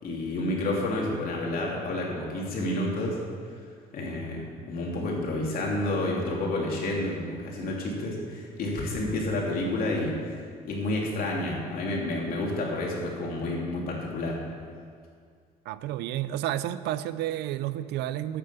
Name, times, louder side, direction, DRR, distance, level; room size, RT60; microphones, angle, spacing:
voice 1, 0.0-3.2 3.9-10.3 10.6-14.4, left 1 dB, 60° left, -2 dB, 3.0 m, -30 dB
voice 2, 15.7-18.4, right 13 dB, 85° right, 14 dB, 0.5 m, -31 dB
10.5 x 8.6 x 6.9 m, 2.1 s
cardioid pair, 110°, 17 cm